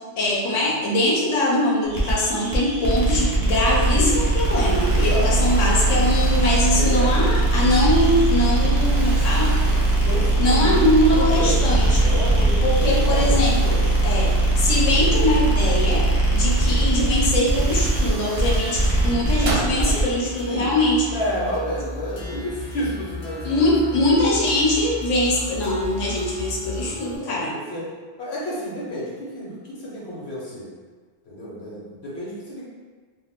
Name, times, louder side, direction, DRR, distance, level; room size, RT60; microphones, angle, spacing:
voice 1, 0.2-9.6 10.4-12.1 12.6-13.8 14.0-21.1 23.4-27.5, left 1 dB, 85° left, -4 dB, 1.1 m, -22 dB
sound 1, 1.9-20.1, right 2 dB, 20° right, 0.6 m, -20 dB
Explosion, 4.4-7.2 7.8-8.0 8.7-11.0 11.3-11.4 12.6-15.3 16.7-16.8 17.3-19.8, right 2 dB, 75° right, 0.9 m, -37 dB
voice 2, 4.9-5.4 6.7-7.2 10.0-10.8 11.1-13.5 19.4-20.7 21.1-24.1 26.6-26.8 27.2-27.9 28.2-30.7 31.3-32.6, equal, 60° left, -6 dB, 1.1 m, -31 dB
sound 2, 17.7-27.2, left 2 dB, 40° left, 0.4 m, -35 dB
2.5 x 2.4 x 3.4 m, 1.5 s
omnidirectional pair, 1.3 m